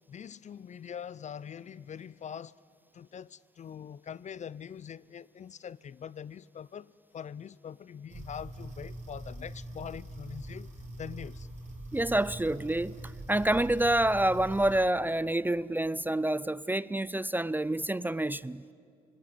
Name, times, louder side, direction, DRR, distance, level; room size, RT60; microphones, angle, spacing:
voice 1, 0.1-2.5 2.9-10.7 11.0-11.5, left 8 dB, 40° left, 0.5 m, -43 dB
sound 1, 8.1-14.8, right 1 dB, 40° right, 4.2 m, -43 dB
voice 2, 11.9-18.6, right 1 dB, 10° right, 0.5 m, -28 dB
26.0 x 19.5 x 7.5 m
supercardioid pair, 60°, 18 cm